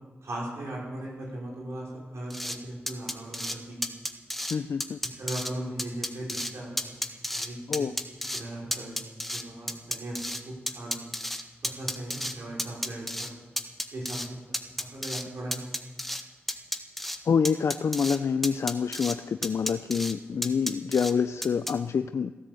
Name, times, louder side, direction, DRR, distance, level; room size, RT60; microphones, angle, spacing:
voice 1, 0.2-3.8 5.0-7.0 7.3-7.9 8.3-9.0 9.3-11.0 11.6-13.3 13.9-15.6, right 1 dB, 75° right, -4 dB, 5.2 m, -38 dB
sound 1, 2.3-2.6 2.9-3.6 3.8-4.6 4.8-5.5 5.8-6.5 6.8-7.5 7.7-8.4 8.7-10.4 10.7-12.3 12.6-13.3 13.6-14.3 14.5-15.2 15.5-16.2 16.5-17.2 17.5-18.2 18.4-19.2 19.4-20.1 20.4-21.1 21.4-21.7, equal, 5° left, 1.6 m, -32 dB
voice 2, 4.5-5.0 7.7-7.9 17.3-22.3, left 6 dB, 70° left, 10 dB, 0.5 m, -27 dB
17.0 x 10.5 x 7.7 m, 1.3 s
cardioid pair, 45°, 5 cm